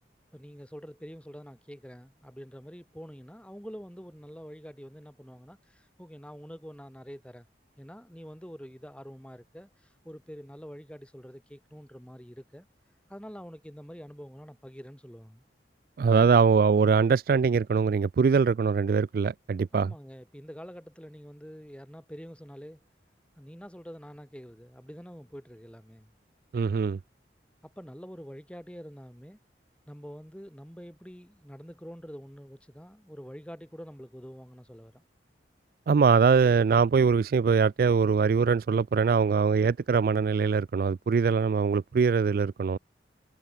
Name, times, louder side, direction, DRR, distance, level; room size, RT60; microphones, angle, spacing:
voice 1, 0.3-7.5 7.8-12.7 13.1-15.4 19.7-22.8 23.4-26.1 27.6-29.4 29.9-35.0, equal, 5° left, 6.1 m, -46 dB
voice 2, 16.0-19.9 26.5-27.0 35.9-42.8, right 5 dB, 50° right, 0.3 m, -22 dB
head